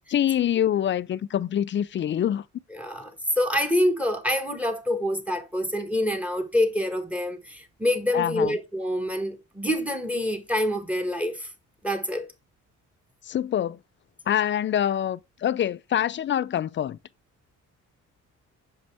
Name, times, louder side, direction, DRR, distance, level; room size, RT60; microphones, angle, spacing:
voice 1, 0.1-2.4 8.1-8.6 13.3-13.8 14.3-17.0, left 10 dB, 40° left, 0.4 m, -25 dB
voice 2, 2.7-11.5 11.8-12.3, left 1 dB, 5° right, 1.5 m, -26 dB
6.5 x 5.2 x 3.4 m
cardioid pair, 90°, 30 cm